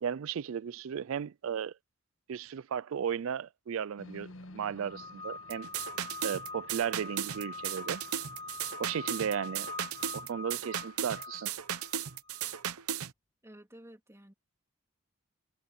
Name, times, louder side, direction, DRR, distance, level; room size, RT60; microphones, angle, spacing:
voice 1, 0.0-1.7 2.3-5.7 6.2-8.0 8.8-9.7 10.1-11.5, right 8 dB, 65° right, 0.4 m, -35 dB
sound 1, 4.0-10.4, left 2 dB, 65° left, 1.5 m, -55 dB
sound 2, 4.9-12.6, left 3 dB, 20° left, 0.5 m, -44 dB
sound 3, 5.5-13.1, right 9 dB, 90° right, 0.8 m, -36 dB
voice 2, 13.4-14.3, right 1 dB, 15° right, 3.0 m, -52 dB
head